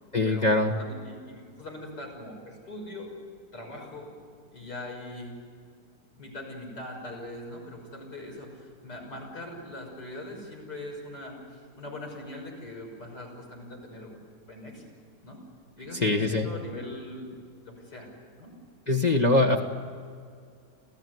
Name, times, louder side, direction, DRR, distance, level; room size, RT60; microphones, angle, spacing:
voice 1, 0.1-0.7 16.0-16.5 18.9-19.6, left 2 dB, 25° left, 0 dB, 1.3 m, -22 dB
voice 2, 0.8-3.1 3.5-4.1 4.5-5.3 6.2-14.2 14.5-14.9 15.2-15.4 15.8-17.3 17.6-18.1 18.4-18.5, left 1 dB, 80° left, -1 dB, 6.8 m, -41 dB
28.5 x 15.5 x 9.4 m, 2.2 s
omnidirectional pair, 1.8 m